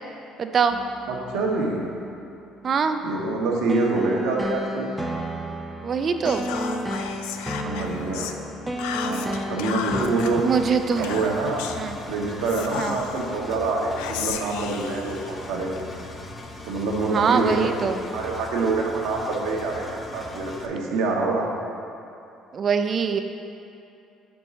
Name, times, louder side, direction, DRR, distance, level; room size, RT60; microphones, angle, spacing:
voice 1, 0.4-0.8 2.6-3.0 5.8-6.5 10.4-11.2 11.8-12.0 12.8-13.0 17.1-18.0 22.5-23.2, right 6 dB, 45° right, 8 dB, 0.5 m, -23 dB
sound 1, 0.7-10.1, equal, 10° right, 0.7 m, -33 dB
voice 2, 1.1-1.8 3.0-4.9 7.6-8.3 8.9-10.4 11.0-11.7 12.1-15.7 16.6-21.5, right 3 dB, 75° right, -2 dB, 1.1 m, -26 dB
Whispering, 6.2-8.4 8.8-10.3 11.0-11.8 12.4-13.3 13.9-15.8, left 8 dB, 80° left, 0.3 m, -34 dB
Engine, 10.0-20.7, left 2 dB, 30° left, 0.8 m, -40 dB
6.2 x 4.5 x 5.5 m, 2.7 s
hypercardioid pair, 65°, 0 cm